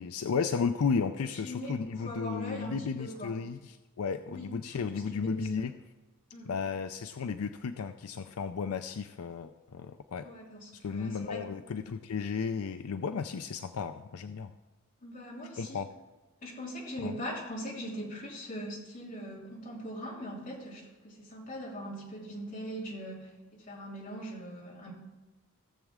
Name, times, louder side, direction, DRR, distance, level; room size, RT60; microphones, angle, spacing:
voice 1, 0.0-5.7 6.4-10.3 10.8-14.5 15.6-15.9 17.0-17.2, left 5 dB, 75° left, 9 dB, 0.4 m, -34 dB
voice 2, 1.3-1.7 2.0-3.3 4.3-4.5 4.9-5.5 6.3-6.5 10.2-11.4 15.0-15.8 16.4-24.9, equal, 40° left, -4 dB, 3.1 m, -41 dB
17.0 x 7.2 x 3.7 m, 1.2 s
head